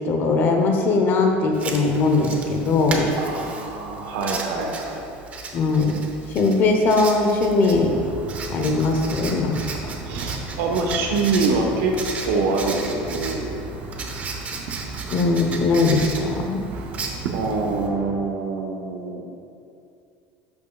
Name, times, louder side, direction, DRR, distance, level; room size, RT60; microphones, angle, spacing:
voice 1, 0.0-3.1 5.5-5.9 6.3-8.0 8.5-9.6 15.1-16.7, left 3 dB, 40° left, 3 dB, 0.8 m, -20 dB
Writing, 1.5-17.9, right 4 dB, 25° right, 0.7 m, -35 dB
voice 2, 3.2-5.1 10.1-13.6 17.3-19.2, right 3 dB, 85° right, 1 dB, 1.1 m, -25 dB
sound 1, 7.7-18.2, right 4 dB, 60° right, 0.7 m, -35 dB
11.5 x 5.6 x 2.3 m, 2.5 s
cardioid pair, 155°, 5 cm